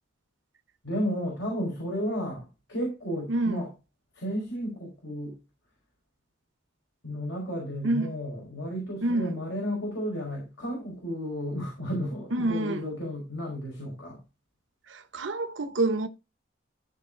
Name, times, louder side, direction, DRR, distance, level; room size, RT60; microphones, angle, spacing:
voice 1, 0.8-3.7 4.1-5.4 7.0-14.2, equal, 75° left, 5.2 m, -33 dB
voice 2, 9.0-9.3 12.3-12.8 15.1-16.1, right 2 dB, 75° right, 0.9 m, -27 dB
14.5 x 4.8 x 3.8 m
head